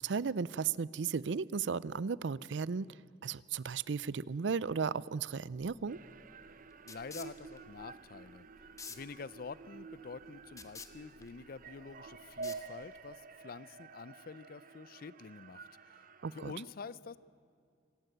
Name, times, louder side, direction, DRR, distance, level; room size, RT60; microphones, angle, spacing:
voice 1, 0.0-2.9 3.2-6.0 16.2-16.5, right 5 dB, 85° right, 21 dB, 0.5 m, -35 dB
sound 1, 5.5-13.2, left 5 dB, 20° left, 1.1 m, -53 dB
sound 2, 5.9-16.5, right 4 dB, 50° right, 0.7 m, -50 dB
voice 2, 6.8-8.5 8.9-16.0 16.3-17.2, left 4 dB, 55° left, 18 dB, 0.5 m, -47 dB
25.5 x 17.0 x 8.0 m, 2.3 s
head